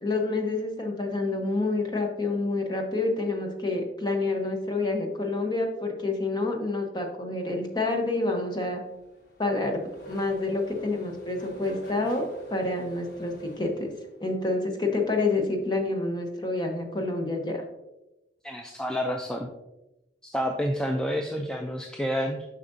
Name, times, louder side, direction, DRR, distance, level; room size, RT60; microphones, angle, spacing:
voice 1, 0.0-8.8 9.4-9.8 10.1-13.9 14.2-17.6, left 2 dB, 20° left, 2 dB, 0.9 m, -28 dB
Race car auto racing / Accelerating revving vroom, 8.8-14.4, right 1 dB, 55° left, 1.1 m, -46 dB
voice 2, 18.4-19.5 20.2-22.5, equal, 5° left, 3 dB, 0.3 m, -29 dB
7.2 x 5.7 x 2.6 m, 0.97 s
head